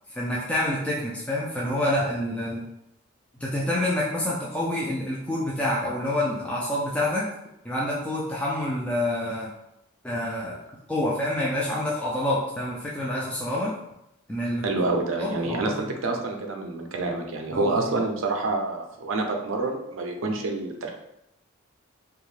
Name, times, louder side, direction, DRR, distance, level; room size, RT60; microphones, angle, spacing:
voice 1, 0.1-2.6 3.4-7.3 7.6-9.5 10.0-10.6 10.9-13.7 14.3-14.6 15.2-15.9 17.5-18.0, left 1 dB, 5° left, -5 dB, 0.3 m, -27 dB
voice 2, 14.6-21.0, right 2 dB, 70° right, 3 dB, 0.5 m, -27 dB
2.6 x 2.3 x 3.1 m, 0.83 s
head